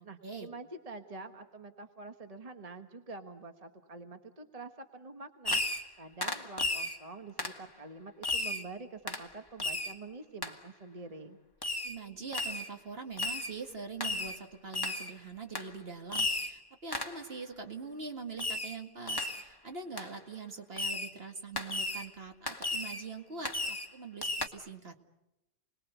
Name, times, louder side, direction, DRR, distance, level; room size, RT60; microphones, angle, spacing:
voice 1, 0.0-11.4, right 3 dB, 30° right, 6 dB, 1.4 m, -47 dB
Fireworks, 5.4-5.9 6.2-7.0 7.4-7.6 8.2-8.7 9.1-9.3 9.6-10.0 10.4-10.5 11.6-12.0 12.3-12.7 13.2-13.5 14.0-14.4 14.7-15.1 15.5-15.7 16.1-16.6 16.9-17.2 18.4-18.8 19.1-19.5 20.0-20.1 20.8-21.1 21.6-22.1 22.5-23.0 23.4-23.9 24.2-24.5, left 2 dB, 20° left, 1.6 m, -34 dB
voice 2, 11.8-25.0, right 4 dB, 50° right, 4 dB, 2.3 m, -43 dB
29.5 x 20.5 x 8.1 m, 0.95 s
omnidirectional pair, 1.3 m